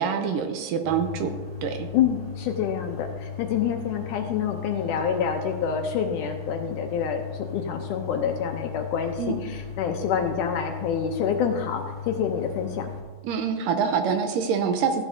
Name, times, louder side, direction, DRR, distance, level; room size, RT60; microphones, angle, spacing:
voice 1, 0.0-1.3 1.6-1.9 9.2-9.4 13.2-15.0, right 6 dB, 80° right, 6 dB, 2.2 m, -25 dB
sound 1, 0.8-13.0, left 6 dB, 20° left, 1.8 m, -37 dB
voice 2, 1.9-12.9, left 7 dB, 75° left, 4 dB, 2.0 m, -27 dB
14.5 x 10.5 x 2.7 m, 1.4 s
omnidirectional pair, 4.1 m